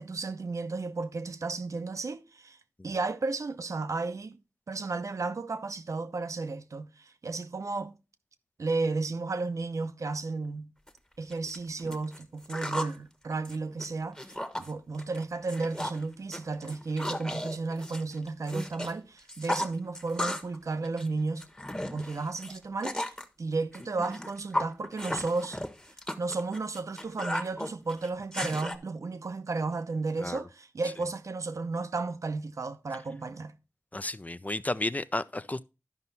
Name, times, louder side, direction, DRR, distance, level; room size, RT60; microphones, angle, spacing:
voice 1, 0.0-2.6 2.8-4.4 4.7-8.0 8.6-10.7 11.2-14.2 14.6-21.4 21.8-23.1 23.4-25.6 26.2-33.5, right 3 dB, 90° right, 0.7 m, -33 dB
sound 1, 10.9-11.0 11.3-13.0 13.3-14.7 15.0-15.2 15.5-16.0 16.3-18.9 19.2-20.6 20.8-23.2 23.7-28.8, left 1 dB, 15° left, 1.1 m, -35 dB
voice 2, 33.9-35.6, left 2 dB, 30° left, 0.4 m, -32 dB
12.0 x 5.5 x 4.1 m
wide cardioid pair, 55°, 5 cm